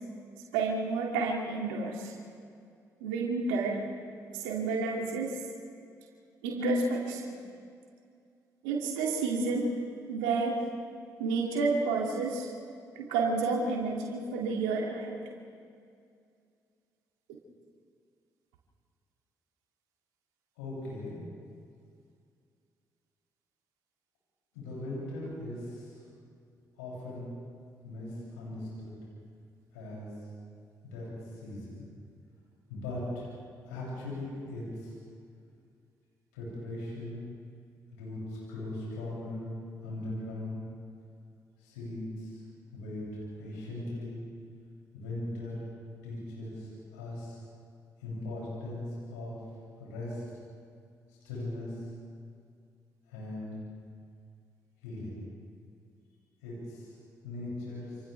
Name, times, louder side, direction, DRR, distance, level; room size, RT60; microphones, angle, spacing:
voice 1, 0.5-2.1 3.0-3.8 4.3-5.4 6.4-7.4 8.6-9.7 10.1-10.6 11.2-12.5 13.0-15.2, right 3 dB, 85° right, -1 dB, 2.7 m, -30 dB
voice 2, 20.6-21.2 24.5-25.9 26.8-27.4 27.8-29.0 29.7-30.1 30.8-31.1 31.4-31.8 32.7-33.3 33.6-34.9 36.3-37.2 37.9-39.5 39.8-40.6 41.6-42.4 42.7-43.0 43.4-44.2 44.9-45.6 46.0-47.4 48.0-49.4 49.8-50.2 51.2-51.8 53.1-53.5 54.8-55.2 56.4-56.9 57.2-58.0, left 1 dB, 85° left, -6 dB, 7.5 m, -39 dB
29.5 x 28.5 x 3.5 m, 2.3 s
hypercardioid pair, 45°, 9 cm